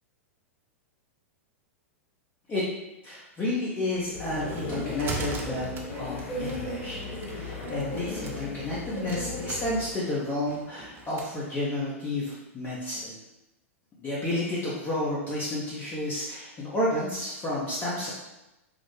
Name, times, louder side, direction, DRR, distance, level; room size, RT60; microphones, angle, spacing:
voice 1, 3.0-7.0 7.3-13.2 14.0-18.1, left 1 dB, 25° left, -7 dB, 0.8 m, -31 dB
sound 1, 4.0-11.3, right 3 dB, 25° right, 0.5 m, -41 dB
sound 2, 4.1-9.9, left 2 dB, 65° left, 0.6 m, -36 dB
3.8 x 2.0 x 3.2 m, 0.97 s
hypercardioid pair, 100°, 8 cm